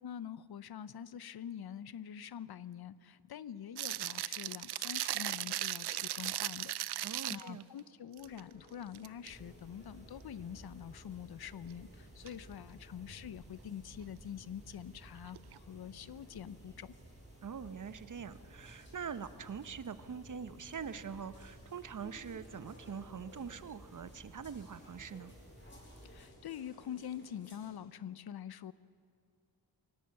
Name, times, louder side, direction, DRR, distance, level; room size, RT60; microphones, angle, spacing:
voice 1, 0.0-16.9 26.0-28.7, left 9 dB, 70° left, 17 dB, 0.7 m, -45 dB
sound 1, 3.8-7.6 8.2-8.4 8.8-9.3 12.3-12.4 15.3-15.6, right 13 dB, 75° right, 0.5 m, -37 dB
voice 2, 7.0-7.6 17.4-25.3, right 6 dB, 50° right, 13 dB, 0.9 m, -44 dB
sound 2, 8.2-27.8, left 1 dB, 30° left, 4.9 m, -60 dB
sound 3, 9.3-26.3, right 1 dB, 15° right, 5.4 m, -56 dB
23.0 x 17.5 x 7.8 m, 2.5 s
wide cardioid pair, 90°, 39 cm